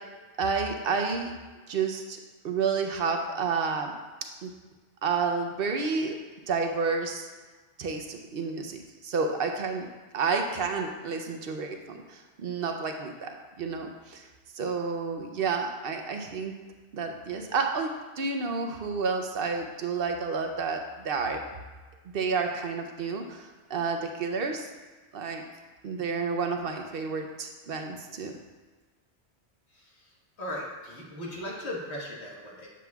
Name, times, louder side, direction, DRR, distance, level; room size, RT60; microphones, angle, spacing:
voice 1, 0.4-1.3 1.7-2.2 2.4-3.9 4.4-4.5 5.0-6.2 6.5-7.3 7.8-9.9 10.1-14.3 14.5-16.5 16.9-17.9 18.2-21.4 22.1-24.7 25.1-25.4 25.8-28.3, right 5 dB, 65° right, 4 dB, 0.8 m, -30 dB
voice 2, 30.4-32.7, left 1 dB, 80° left, -3 dB, 1.7 m, -37 dB
7.7 x 7.3 x 2.3 m, 1.3 s
omnidirectional pair, 1.1 m